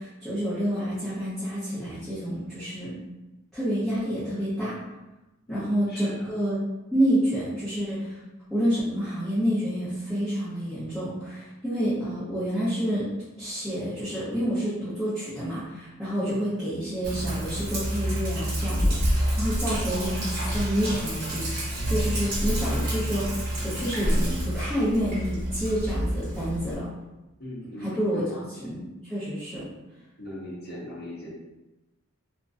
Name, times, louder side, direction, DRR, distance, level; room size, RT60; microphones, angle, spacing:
voice 1, 0.0-2.9 3.5-4.7 5.5-6.6 6.9-8.2 8.5-13.0 13.4-27.0 27.8-28.8 29.1-29.6, equal, ahead, -16 dB, 1.0 m, -28 dB
voice 2, 5.5-6.3 16.3-16.4 27.4-28.7 30.2-31.3, left 1 dB, 45° left, -6 dB, 0.9 m, -39 dB
Sink (filling or washing), 17.0-26.7, equal, 45° right, 0.8 m, -28 dB
2.9 x 2.5 x 2.5 m, 1.0 s
head